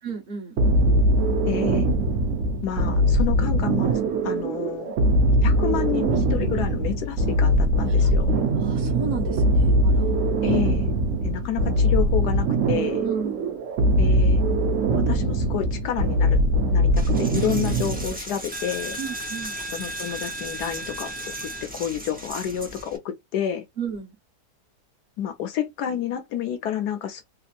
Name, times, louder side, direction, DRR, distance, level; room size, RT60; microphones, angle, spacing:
voice 1, 0.0-0.6 8.0-10.3 10.5-10.8 13.0-13.6 19.0-19.6 23.8-24.2, right 6 dB, 40° right, 1.2 m, -34 dB
sound 1, 0.6-18.2, right 1 dB, 60° right, 0.9 m, -21 dB
voice 2, 1.5-1.9 2.6-4.9 5.4-8.3 10.4-10.9 11.2-13.0 14.0-14.4 14.9-16.4 16.7-19.0 19.7-21.1 21.4-23.0 23.3-23.6 25.2-27.2, left 10 dB, 75° left, 1.2 m, -29 dB
Coin (dropping), 17.0-23.0, right 1 dB, 15° right, 0.3 m, -35 dB
3.4 x 2.8 x 2.5 m
omnidirectional pair, 1.8 m